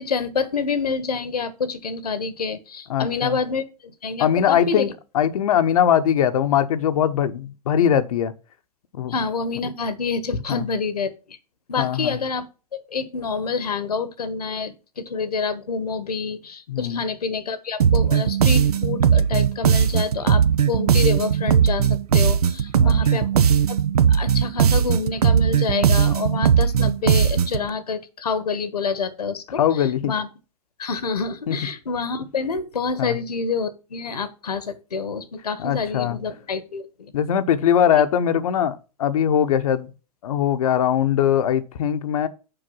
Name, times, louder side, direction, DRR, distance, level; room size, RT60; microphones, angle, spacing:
voice 1, 0.0-4.9 9.1-11.4 11.7-12.5 12.9-23.4 23.7-23.8 24.1-30.3 30.8-37.1, left 5 dB, 80° left, 1.2 m, -27 dB
voice 2, 2.9-3.4 4.2-8.3 8.9-9.1 10.5-10.6 11.8-12.2 16.7-17.0 22.8-23.3 29.6-30.1 31.5-31.6 33.0-33.2 35.6-36.2 37.1-39.9 40.2-42.3, left 9 dB, 65° left, 0.9 m, -21 dB
sound 1, 17.8-27.7, right 8 dB, 75° right, 0.8 m, -18 dB
6.9 x 5.3 x 5.4 m
figure-of-eight pair, 105°, 20 cm